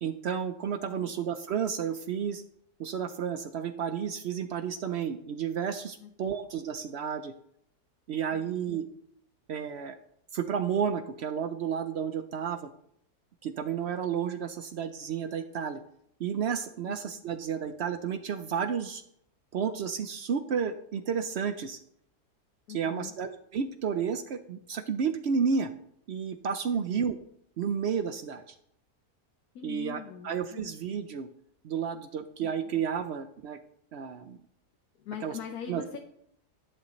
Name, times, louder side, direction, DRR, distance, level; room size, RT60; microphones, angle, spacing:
voice 1, 0.0-2.4 2.8-7.3 8.1-8.9 9.5-10.0 10.3-12.7 13.4-15.8 16.2-19.0 19.5-21.8 22.7-25.7 26.1-27.2 27.6-28.5 29.6-31.3 31.6-33.6 33.9-34.4 35.2-35.3 35.7-35.8, right 7 dB, 70° right, 10 dB, 0.6 m, -31 dB
voice 2, 0.8-1.1 6.0-6.4 8.3-8.9 16.9-17.2 22.7-23.2 26.7-27.1 29.5-30.8 32.4-32.5 35.0-36.0, left 8 dB, 70° left, 4 dB, 1.3 m, -43 dB
11.5 x 10.0 x 3.1 m, 0.72 s
omnidirectional pair, 1.8 m